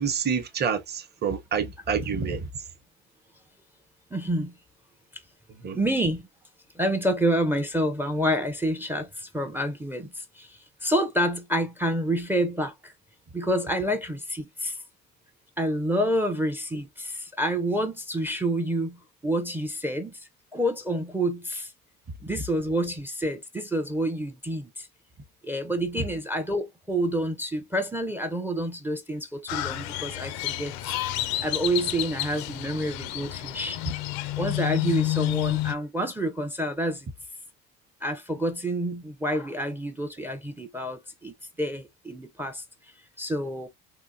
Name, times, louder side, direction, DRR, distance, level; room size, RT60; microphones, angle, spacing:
voice 1, 0.0-2.5 5.6-5.8 26.0-26.1, right 6 dB, 30° right, 0.8 m, -28 dB
voice 2, 4.1-4.6 5.1-5.2 5.7-6.3 6.8-12.9 13.3-14.8 15.6-20.2 20.5-21.7 22.2-24.9 25.4-31.0 31.4-33.8 34.4-37.1 38.0-42.6 43.2-43.7, right 1 dB, 5° right, 0.4 m, -28 dB
Crow, 29.5-35.7, left 15 dB, 85° left, 0.6 m, -30 dB
3.7 x 2.5 x 2.5 m
cardioid pair, 120°, 35 cm